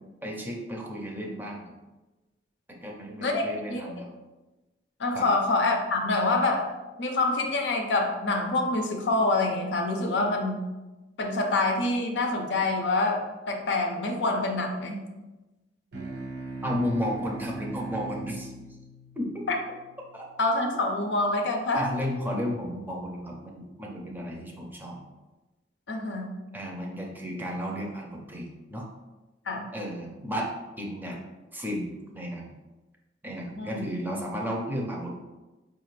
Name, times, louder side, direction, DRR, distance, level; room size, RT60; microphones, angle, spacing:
voice 1, 0.2-1.7 2.7-4.1 5.1-5.3 16.6-18.5 19.2-19.5 20.1-20.2 21.7-25.0 26.5-28.9 29.7-30.5 30.8-31.2 31.5-31.9 32.1-32.5 33.2-35.2, equal, 10° right, -1 dB, 0.5 m, -33 dB
voice 2, 3.7-4.0 5.0-6.7 7.0-10.6 11.2-15.0 19.5-19.6 20.4-21.9 25.9-26.3 29.5-29.7 33.6-33.9, left 2 dB, 75° left, 3 dB, 0.6 m, -26 dB
sound 1, 15.9-20.8, right 2 dB, 65° right, 0.7 m, -40 dB
4.8 x 2.5 x 3.1 m, 1.1 s
head